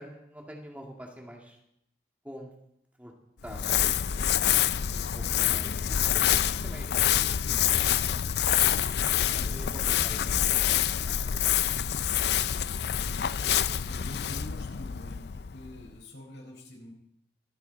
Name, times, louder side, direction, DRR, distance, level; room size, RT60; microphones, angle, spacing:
voice 1, 0.0-1.6 2.2-2.5 3.0-3.1 3.4-3.8 4.1-4.3 4.8-6.3 6.6-7.9 9.2-10.4 11.0-12.3, equal, 10° right, 0 dB, 2.2 m, -47 dB
Crumpling crinkling, 3.4-15.9, left 10 dB, 70° left, 0.5 m, -26 dB
voice 2, 9.4-9.7 13.8-17.0, left 1 dB, 90° left, 0 dB, 4.9 m, -46 dB
25.0 x 9.5 x 4.1 m, 0.75 s
head